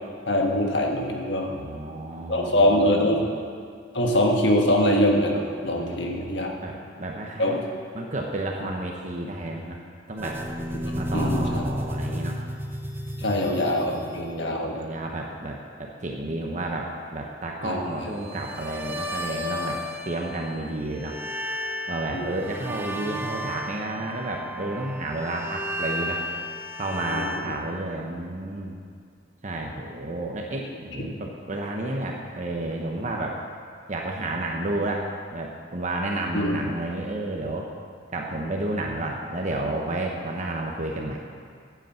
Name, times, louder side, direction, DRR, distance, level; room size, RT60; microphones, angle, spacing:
voice 1, 0.3-1.5 2.3-3.2 3.9-6.5 7.4-7.6 11.1-11.6 13.2-14.8 17.6-18.1 22.1-22.3 27.1-27.5 36.3-36.6, left 1 dB, 65° left, 0 dB, 1.6 m, -23 dB
voice 2, 1.4-2.7 3.0-3.3 5.7-7.6 7.9-9.8 10.1-10.4 10.9-12.4 13.2-21.1 21.9-26.2 26.7-28.8 29.4-33.4 33.9-37.7 38.1-41.2, right 2 dB, 40° right, 0 dB, 1.0 m, -31 dB
sound 1, 10.2-14.4 18.2-20.6 20.9-27.4, equal, 10° right, 0.7 m, -33 dB
9.9 x 8.3 x 7.7 m, 2.1 s
head